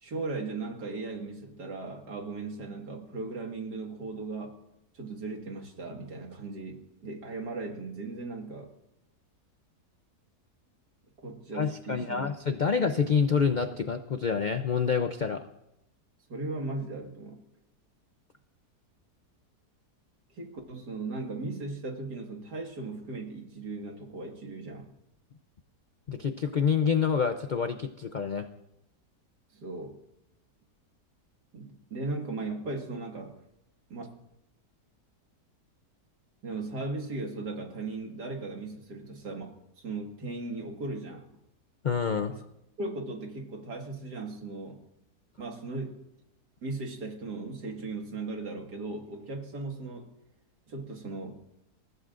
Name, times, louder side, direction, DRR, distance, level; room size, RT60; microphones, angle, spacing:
voice 1, 0.0-4.5 4.9-8.7 11.2-12.3 16.3-17.4 20.3-24.9 29.5-30.0 31.5-33.4 33.9-34.0 36.4-41.3 42.3-42.4 42.8-44.8 45.4-46.0 46.6-50.1 50.7-51.4, right 3 dB, 80° right, 2 dB, 2.5 m, -37 dB
voice 2, 11.5-15.4 26.1-28.5 41.8-42.4, left 6 dB, 65° left, 7 dB, 0.4 m, -27 dB
28.0 x 15.0 x 2.6 m, 0.84 s
omnidirectional pair, 1.7 m